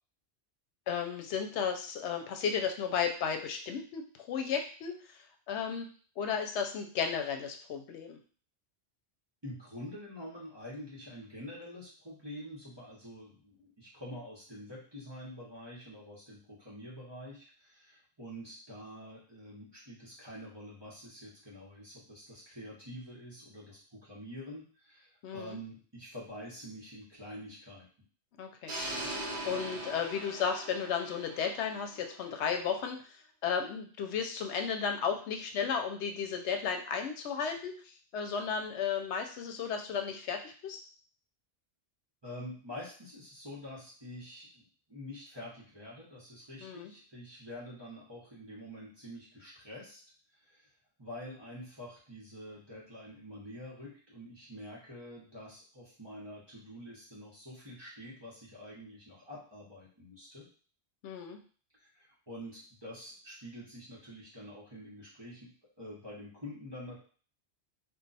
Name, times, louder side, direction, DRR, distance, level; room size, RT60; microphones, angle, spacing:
voice 1, 0.9-5.2 5.5-8.2 25.2-25.6 28.4-28.7 29.4-33.1 33.4-40.8 46.6-46.9 61.0-61.4, left 6 dB, 85° left, 5 dB, 0.9 m, -34 dB
voice 2, 9.4-27.9 42.2-50.0 50.3-50.7 51.0-60.5 61.8-65.5 65.8-67.0, equal, 25° right, -7 dB, 0.9 m, -47 dB
sound 1, 28.7-32.7, right 1 dB, 50° right, 1.0 m, -41 dB
2.4 x 2.3 x 3.9 m, 0.42 s
omnidirectional pair, 1.1 m